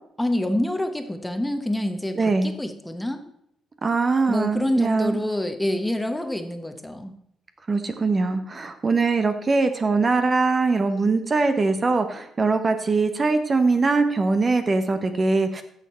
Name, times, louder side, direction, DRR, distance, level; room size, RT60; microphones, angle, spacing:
voice 1, 0.2-3.2 4.3-7.2, left 1 dB, 5° left, 7 dB, 1.1 m, -27 dB
voice 2, 2.1-2.5 3.8-5.2 7.7-15.6, right 3 dB, 35° right, 8 dB, 1.0 m, -22 dB
14.0 x 6.7 x 4.4 m, 0.72 s
cardioid pair, 90°, 0 cm